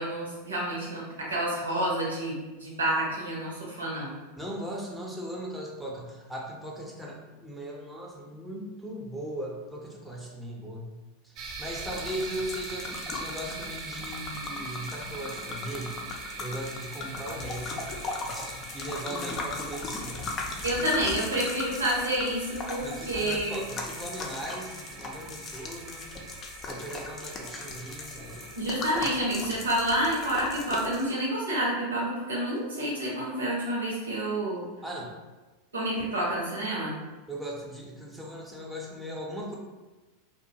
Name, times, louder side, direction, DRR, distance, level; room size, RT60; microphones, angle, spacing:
voice 1, 0.0-2.4 2.6-4.1 19.1-19.3 20.6-23.6 28.6-34.6 35.7-37.0, right 1 dB, 80° right, -4 dB, 0.9 m, -29 dB
voice 2, 4.4-10.9 11.2-16.0 16.4-20.3 22.8-26.4 26.6-28.5 34.8-35.1 37.3-39.5, right 1 dB, 5° right, -2 dB, 0.6 m, -38 dB
sound 1, 11.4-28.6, right 4 dB, 45° right, 0.4 m, -43 dB
sound 2, 11.8-31.0, left 3 dB, 35° left, 0.4 m, -38 dB
2.4 x 2.2 x 2.8 m, 1.2 s
figure-of-eight pair, 90°, 0 cm